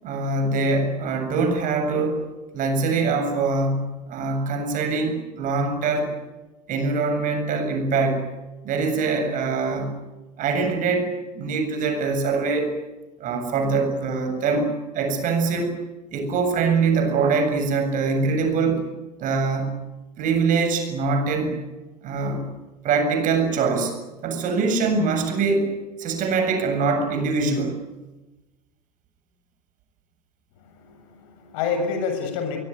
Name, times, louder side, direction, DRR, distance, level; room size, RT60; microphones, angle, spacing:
voice 1, 0.0-2.2 2.5-6.2 6.7-8.3 8.6-10.0 10.4-12.8 13.2-15.8 16.1-18.8 19.2-19.8 20.2-21.6 22.0-22.5 22.8-23.9 24.2-25.7 26.0-27.8, right 4 dB, 40° right, 6 dB, 7.8 m, -23 dB
voice 2, 30.7-32.6, left 5 dB, 55° left, 7 dB, 7.1 m, -28 dB
24.5 x 22.5 x 9.6 m, 1.1 s
figure-of-eight pair, 75°, 21 cm